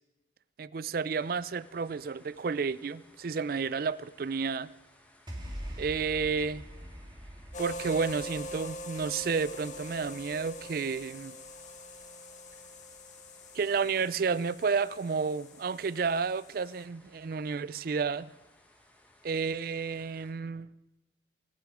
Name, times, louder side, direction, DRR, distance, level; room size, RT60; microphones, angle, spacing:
voice 1, 0.6-4.7 5.8-6.6 7.6-11.4 13.5-18.3 19.2-20.7, right 5 dB, 50° right, 0.4 m, -31 dB
sound 1, 1.1-20.3, left 1 dB, 10° left, 1.4 m, -62 dB
sound 2, 5.3-11.7, equal, 25° right, 2.2 m, -45 dB
sound 3, 7.5-16.8, left 1 dB, 40° left, 1.5 m, -44 dB
24.5 x 9.5 x 4.9 m
head